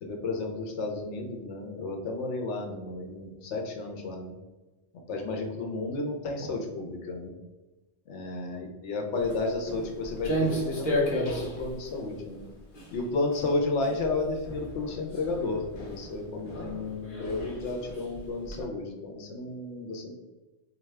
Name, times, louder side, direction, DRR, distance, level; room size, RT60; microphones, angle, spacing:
voice 1, 0.0-4.3 5.1-7.3 8.1-12.4 12.9-20.1, left 3 dB, 90° left, 2 dB, 1.0 m, -32 dB
Walk footsteps, 9.1-18.6, equal, 55° left, 0.9 m, -35 dB
3.5 x 2.7 x 3.2 m, 1.1 s
omnidirectional pair, 1.1 m